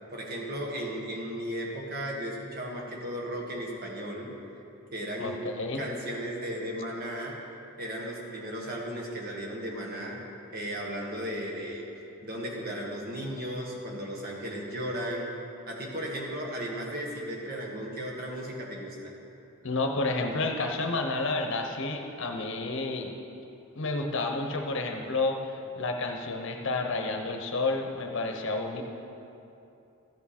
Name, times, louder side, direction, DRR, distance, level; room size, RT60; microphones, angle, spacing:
voice 1, 0.1-4.3 4.9-5.4 5.7-7.4 7.8-10.2 10.5-11.9 12.2-15.3 15.7-19.1, equal, 40° right, -1 dB, 1.5 m, -35 dB
voice 2, 5.2-5.8 19.6-23.1 23.7-28.8, left 3 dB, 55° left, 3 dB, 0.9 m, -30 dB
13.5 x 8.6 x 4.3 m, 2.8 s
head